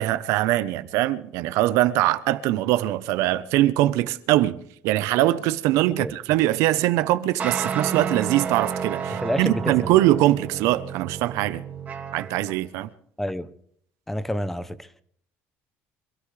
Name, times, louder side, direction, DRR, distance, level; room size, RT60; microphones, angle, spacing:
voice 1, 0.0-11.6 12.1-12.9, right 15 dB, 75° right, 0.9 m, -22 dB
sound 1, 7.4-12.6, right 6 dB, 35° right, 2.9 m, -31 dB
voice 2, 9.1-9.8 13.2-13.5 14.1-15.0, left 1 dB, 5° left, 0.8 m, -29 dB
25.5 x 13.5 x 3.4 m
cardioid pair, 130°, 5 cm